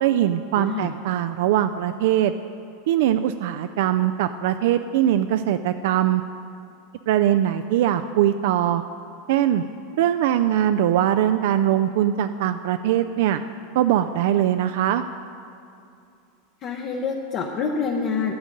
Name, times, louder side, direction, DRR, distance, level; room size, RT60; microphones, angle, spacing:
voice 1, 0.0-2.3 2.9-6.2 7.1-8.8 9.3-9.6 10.0-13.4 13.7-15.0, right 11 dB, 65° right, 9 dB, 0.3 m, -21 dB
voice 2, 0.6-0.9 16.6-18.3, left 5 dB, 35° left, 1 dB, 0.7 m, -27 dB
12.0 x 7.8 x 5.2 m, 2.6 s
supercardioid pair, 150°, 0 cm